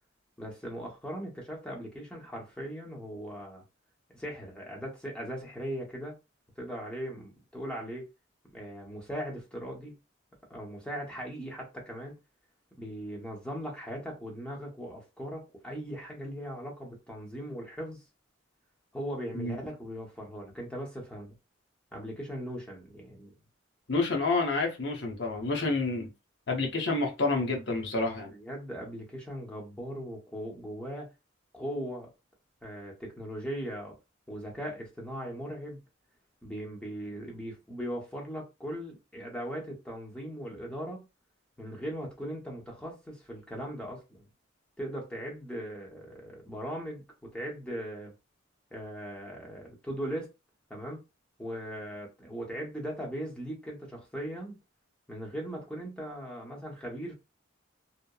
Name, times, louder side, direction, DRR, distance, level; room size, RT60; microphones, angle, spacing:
voice 1, 0.4-3.6 4.1-6.2 6.6-8.0 8.5-9.9 10.5-12.1 12.8-18.0 18.9-21.3 21.9-23.3 25.6-25.8 28.3-31.1 31.5-32.1 32.6-33.9 34.3-35.8 36.4-41.0 41.6-44.3 44.8-48.1 48.7-50.3 50.7-51.0 51.4-54.6 55.1-57.1, equal, 5° left, 0.7 m, -39 dB
voice 2, 23.9-26.1 26.5-28.3, left 3 dB, 60° left, 0.7 m, -29 dB
2.8 x 2.0 x 2.3 m
head